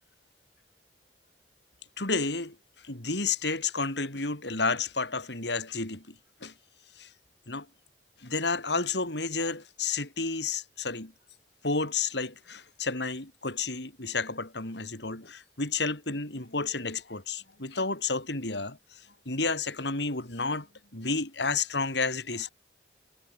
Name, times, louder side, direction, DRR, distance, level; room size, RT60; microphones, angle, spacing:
voice 1, 2.0-2.6 2.8-6.5 7.0-7.1 7.5-7.7 8.2-11.1 11.6-20.7 20.9-22.5, left 4 dB, 75° left, 4.2 m, -31 dB
head